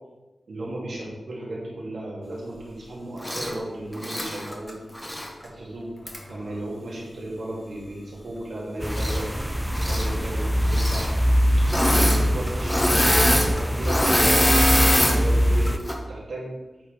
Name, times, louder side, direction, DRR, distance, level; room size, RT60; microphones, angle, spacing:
voice 1, 0.5-4.7 5.4-5.9 6.3-9.6 9.9-11.1 11.8-16.5, right 1 dB, 80° right, -5 dB, 2.3 m, -35 dB
Engine / Mechanisms, 3.2-3.5 4.0-5.3 6.1-6.2 8.9-9.4 9.7-10.1 10.6-11.1 11.6-12.2 12.5-15.2 15.7-15.9, equal, 15° left, 1.1 m, -23 dB
sound 1, 8.8-15.8, equal, 5° right, 0.5 m, -23 dB
8.3 x 4.3 x 3.4 m, 1.1 s
wide cardioid pair, 65°, 0 cm